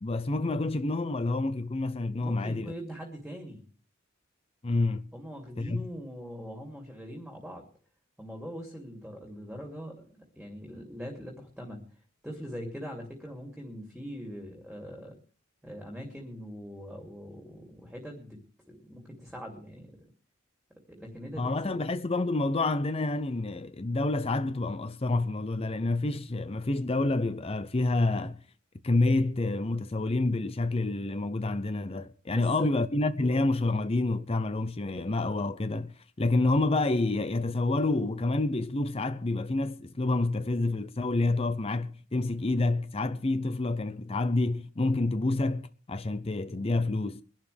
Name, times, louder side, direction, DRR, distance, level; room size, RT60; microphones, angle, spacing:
voice 1, 0.0-2.7 4.6-5.1 5.6-5.9 21.4-28.4 28.8-47.2, left 2 dB, 30° left, 0.6 m, -28 dB
voice 2, 2.2-3.6 5.1-7.6 8.2-11.8 12.2-15.2 15.6-18.4 18.7-20.0 20.9-21.7 32.3-32.7, equal, 5° right, 2.7 m, -42 dB
22.5 x 12.0 x 3.4 m
head